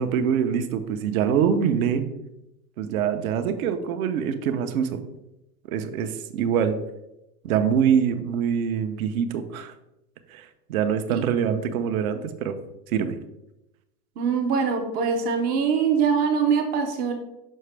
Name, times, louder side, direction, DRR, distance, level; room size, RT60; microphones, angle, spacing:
voice 1, 0.0-2.1 2.8-5.0 5.7-6.8 7.4-9.7 10.3-12.6 12.9-13.2, right 8 dB, 60° right, 8 dB, 0.8 m, -24 dB
voice 2, 14.2-17.1, right 6 dB, 20° right, 4 dB, 0.5 m, -23 dB
6.5 x 4.7 x 3.3 m, 0.90 s
supercardioid pair, 150°, 49 cm